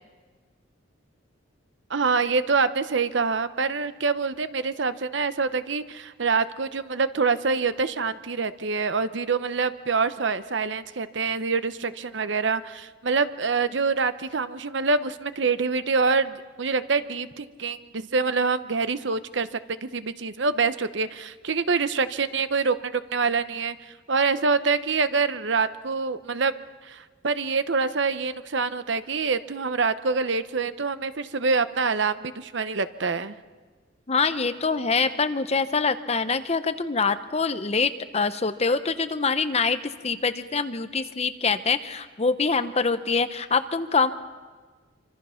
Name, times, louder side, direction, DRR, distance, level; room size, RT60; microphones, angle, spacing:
voice 1, 1.9-26.5 26.8-33.4, right 4 dB, 65° right, 12 dB, 0.8 m, -26 dB
voice 2, 34.1-44.1, left 4 dB, 30° left, 10 dB, 0.9 m, -25 dB
26.5 x 25.0 x 5.8 m, 1.4 s
head